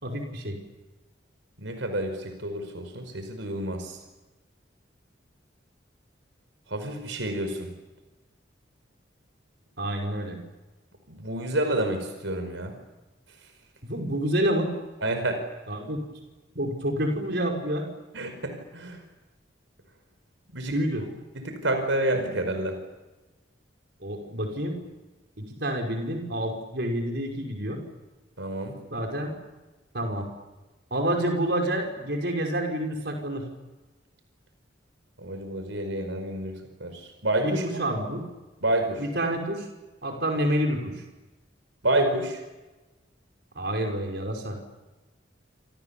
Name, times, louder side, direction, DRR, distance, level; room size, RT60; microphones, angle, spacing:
voice 1, 0.0-0.6 9.8-10.4 13.8-14.7 15.7-16.0 16.5-17.9 20.7-21.0 24.0-24.8 25.4-27.8 28.9-29.3 29.9-30.3 30.9-33.5 37.4-38.2 39.0-39.6 40.0-41.0 43.6-44.6, right 1 dB, 60° right, 2 dB, 5.7 m, -28 dB
voice 2, 1.6-4.0 6.7-7.7 11.1-12.7 15.0-15.4 18.1-19.0 20.5-20.7 21.5-22.8 28.4-28.7 35.2-36.5 36.8-37.6 38.6-39.0 41.8-42.4, right 1 dB, 85° right, 7 dB, 5.1 m, -28 dB
28.0 x 28.0 x 7.2 m, 1.1 s
head